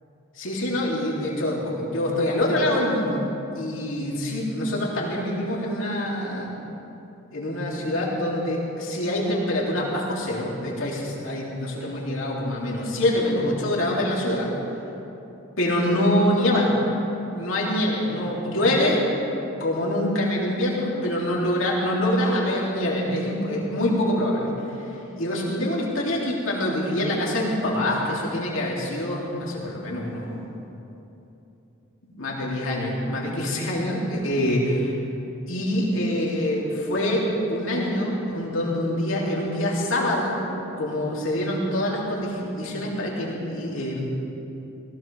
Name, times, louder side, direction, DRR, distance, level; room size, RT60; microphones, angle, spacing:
voice 1, 0.4-3.2 3.6-6.5 7.3-14.5 15.6-16.7 17.3-19.0 19.6-24.5 25.2-30.4 32.0-34.9 35.5-40.4 40.8-44.0, left 1 dB, 70° left, -4 dB, 3.0 m, -25 dB
18.5 x 18.0 x 3.5 m, 3.0 s
head